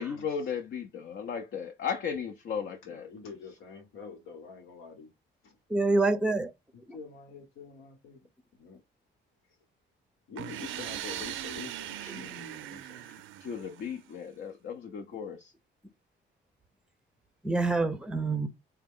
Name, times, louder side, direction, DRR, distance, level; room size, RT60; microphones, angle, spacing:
voice 1, 0.0-3.1 13.4-15.5, left 7 dB, 60° left, 0.7 m, -35 dB
voice 2, 2.8-5.1 5.4-5.6 6.7-8.8 10.3-13.2, left 5 dB, 85° left, 1.2 m, -47 dB
voice 3, 5.7-6.5 17.4-18.5, right 3 dB, 5° right, 0.6 m, -26 dB
sound 1, 10.4-14.1, right 12 dB, 80° right, 0.4 m, -40 dB
3.6 x 2.2 x 3.6 m
cardioid pair, 90°, 20 cm